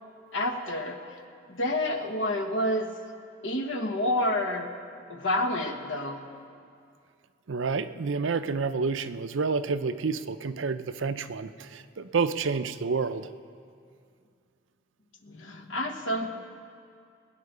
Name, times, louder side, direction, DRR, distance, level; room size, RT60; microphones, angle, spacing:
voice 1, 0.3-1.2 1.5-2.9 3.4-4.7 5.1-6.2 15.2-16.3, left 1 dB, 70° left, 5 dB, 1.3 m, -29 dB
voice 2, 7.5-13.3, right 4 dB, 70° right, 11 dB, 0.6 m, -29 dB
21.0 x 9.6 x 6.7 m, 2.3 s
head